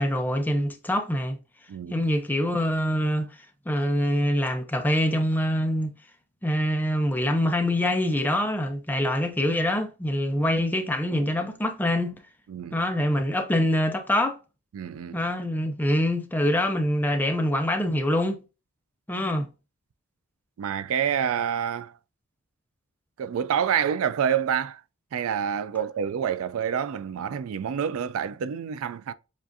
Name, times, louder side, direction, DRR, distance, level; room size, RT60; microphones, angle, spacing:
voice 1, 0.0-1.4 1.9-5.9 6.4-12.1 12.7-14.4 15.1-18.4 19.1-19.5, left 1 dB, 10° left, 0.5 m, -25 dB
voice 2, 1.7-2.0 12.5-12.8 14.7-15.2 20.6-22.0 23.2-24.8 25.1-29.1, right 8 dB, 65° right, 0.3 m, -27 dB
7.2 x 2.5 x 2.6 m
head